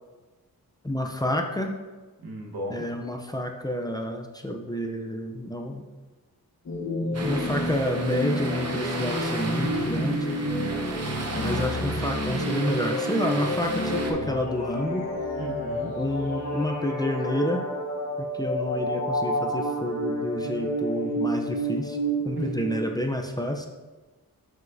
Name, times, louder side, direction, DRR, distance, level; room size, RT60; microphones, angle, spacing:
voice 1, 0.8-1.7 2.7-5.8 7.2-10.3 11.3-15.0 16.0-17.6 18.2-22.0 22.2-23.7, equal, 10° left, 2 dB, 0.5 m, -29 dB
voice 2, 2.2-2.8 15.3-15.9 22.4-22.7, right 1 dB, 85° right, -1 dB, 1.3 m, -35 dB
sound 1, 6.7-22.8, equal, 50° left, 1.3 m, -29 dB
sound 2, 7.1-14.1, right 2 dB, 45° right, 0.9 m, -35 dB
7.0 x 6.3 x 2.6 m, 1.2 s
wide cardioid pair, 115°, 37 cm